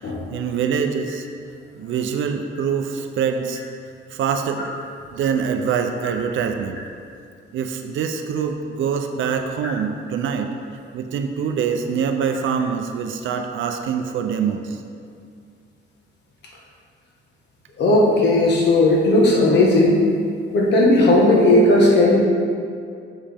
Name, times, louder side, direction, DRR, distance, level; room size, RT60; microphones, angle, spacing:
voice 1, 0.0-1.3 1.8-3.6 4.1-4.8 5.1-6.8 7.5-10.5 10.9-14.8, right 6 dB, 75° right, 5 dB, 0.5 m, -24 dB
voice 2, 17.8-20.0 20.5-22.2, left 1 dB, 55° left, -3 dB, 1.4 m, -15 dB
7.4 x 6.2 x 3.5 m, 2.3 s
cardioid pair, 140°, 21 cm